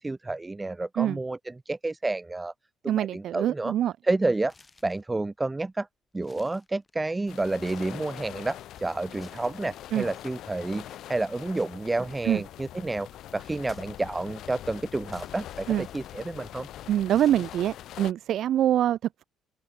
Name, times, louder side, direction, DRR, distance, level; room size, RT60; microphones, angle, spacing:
voice 1, 0.0-2.5 2.8-3.7 4.0-4.5 4.8-5.9 6.1-13.1 13.3-15.7 15.9-16.7, right 2 dB, 10° right, 1.0 m, -30 dB
voice 2, 2.9-3.9 9.9-10.1 12.2-12.4 15.7-15.9 16.9-19.2, right 11 dB, 60° right, 0.7 m, -25 dB
sound 1, 4.4-5.1 5.6-5.7 6.1-7.2 7.5-8.2 9.0-10.1 11.5-12.6 13.6-14.4 15.1-16.6 17.1-18.0, left 3 dB, 20° left, 5.7 m, -57 dB
sound 2, 7.3-18.1, left 13 dB, 65° left, 1.0 m, -43 dB
open air
cardioid pair, 145°, 0 cm